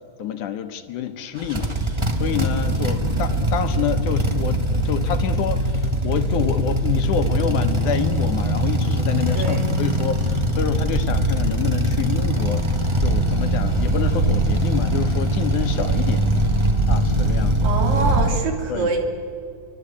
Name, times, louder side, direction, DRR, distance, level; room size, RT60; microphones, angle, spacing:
voice 1, 0.2-1.7 2.2-12.6 13.0-16.2 16.9-17.7 18.7-18.9, left 8 dB, 70° left, 8 dB, 2.5 m, -27 dB
sound 1, 1.4-18.3, right 1 dB, 45° right, 0.3 m, -21 dB
voice 2, 9.3-9.7 17.6-19.0, right 4 dB, 80° right, 2 dB, 4.6 m, -25 dB
29.5 x 24.0 x 8.5 m, 2.4 s
omnidirectional pair, 3.9 m